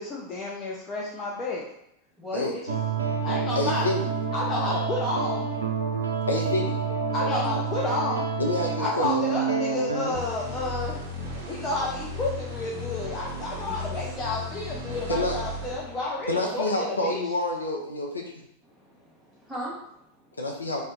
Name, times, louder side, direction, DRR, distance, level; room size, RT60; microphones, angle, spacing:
voice 1, 0.0-1.7 2.5-2.8 3.2-3.9 4.3-5.5 7.1-8.3 8.8-11.0 11.5-17.2, left 2 dB, 25° left, -3 dB, 0.5 m, -30 dB
voice 2, 2.2-2.6 7.2-7.6 13.6-14.1 18.6-20.4, equal, 10° right, -5 dB, 1.1 m, -39 dB
sound 1, 2.7-10.2, right 6 dB, 75° right, 0.4 m, -28 dB
voice 3, 3.6-4.1 6.3-6.8 8.4-9.1 15.1-15.4 16.3-18.4 20.4-20.8, left 2 dB, 80° left, 0 dB, 0.5 m, -27 dB
sound 2, 10.1-16.6, left 2 dB, 45° right, 1.1 m, -36 dB
2.8 x 2.1 x 3.6 m, 0.79 s
figure-of-eight pair, 90°, 0 cm